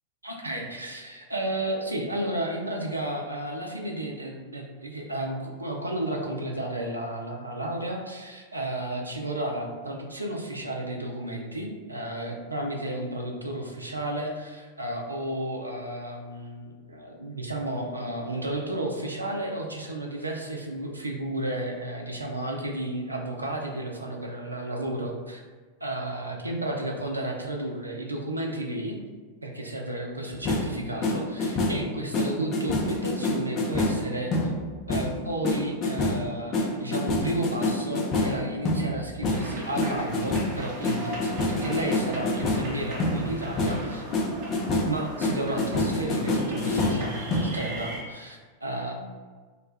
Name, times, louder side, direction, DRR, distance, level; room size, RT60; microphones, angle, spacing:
voice 1, 0.2-25.4 25.8-29.0 29.4-34.5 34.9-44.1 44.8-49.1, right 1 dB, 80° right, 1 dB, 0.4 m, -32 dB
sound 1, 30.3-31.9 32.1-43.9 44.1-47.4, left 2 dB, 35° left, 0.4 m, -27 dB
sound 2, 39.3-48.0, right 1 dB, 40° right, 0.8 m, -38 dB
2.4 x 2.2 x 3.2 m, 1.4 s
figure-of-eight pair, 90°, 0 cm